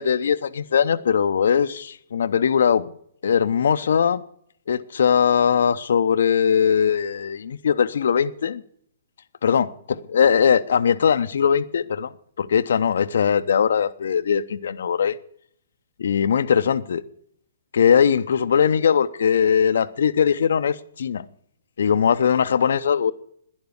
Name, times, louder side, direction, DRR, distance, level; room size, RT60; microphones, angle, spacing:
voice 1, 0.0-2.9 3.2-4.2 4.7-8.6 9.4-12.1 12.4-15.2 16.0-17.0 17.7-21.2 21.8-23.1, left 7 dB, 65° left, 0.6 m, -20 dB
11.5 x 10.5 x 8.1 m
figure-of-eight pair, 125°, 0 cm